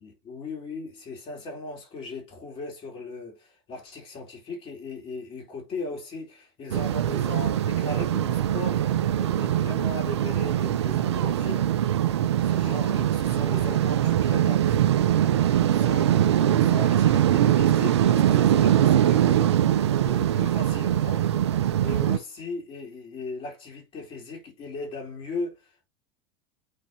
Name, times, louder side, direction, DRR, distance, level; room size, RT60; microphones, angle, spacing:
voice 1, 0.0-11.7 12.4-14.8 15.7-16.1 16.4-19.6 20.0-21.3 21.8-25.6, left 3 dB, 40° left, 4.1 m, -38 dB
sound 1, 6.7-22.2, right 11 dB, 85° right, 0.7 m, -22 dB
9.4 x 4.3 x 2.8 m
hypercardioid pair, 95°, 14 cm